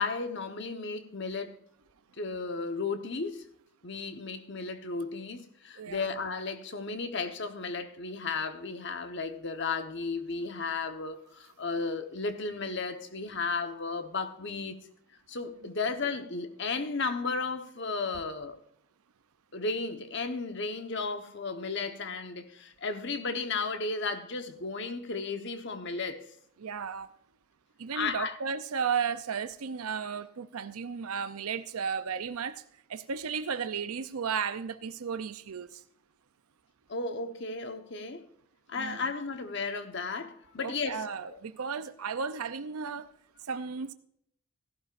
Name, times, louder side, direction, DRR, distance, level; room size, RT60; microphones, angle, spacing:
voice 1, 0.0-1.6 2.2-3.5 3.8-14.9 15.3-18.6 19.5-26.3 27.9-28.4 36.9-38.3 38.7-41.4, left 4 dB, 55° left, 1.1 m, -34 dB
voice 2, 5.8-6.1 26.6-27.1 27.8-32.6 32.9-35.8 38.7-39.0 40.6-43.1 43.4-43.9, right 6 dB, 85° right, 0.6 m, -34 dB
17.5 x 12.0 x 2.5 m
head